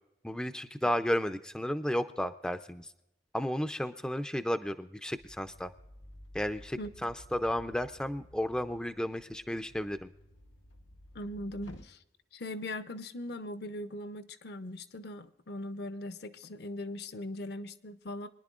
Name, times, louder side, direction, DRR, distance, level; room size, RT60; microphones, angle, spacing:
voice 1, 0.2-2.9 3.3-5.7 6.3-10.1, equal, 5° left, 0.3 m, -33 dB
sound 1, 5.2-11.9, equal, 85° left, 1.0 m, -54 dB
voice 2, 6.8-7.1 11.1-12.0 12.3-18.3, left 1 dB, 60° left, 0.6 m, -40 dB
24.0 x 10.5 x 2.4 m
head